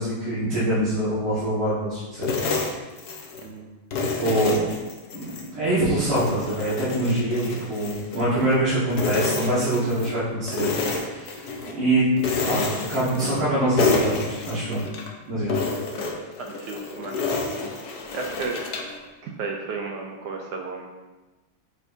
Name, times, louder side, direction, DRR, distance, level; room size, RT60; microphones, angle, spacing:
voice 1, 0.0-2.7 4.2-4.6 5.1-5.3 5.5-12.0 12.4-14.8 15.3-15.5, right 1 dB, 85° right, -13 dB, 3.0 m, -24 dB
sound 1, 2.2-3.5 3.9-5.5 5.9-8.6 8.9-10.1 10.5-11.7 12.2-13.5 13.8-15.1 15.5-19.0, left 4 dB, 60° left, 1.2 m, -29 dB
voice 2, 3.4-3.7 16.4-17.2 18.1-18.6 19.2-20.9, right 4 dB, 70° right, 1 dB, 1.0 m, -33 dB
7.9 x 4.8 x 2.7 m, 1.2 s
omnidirectional pair, 2.3 m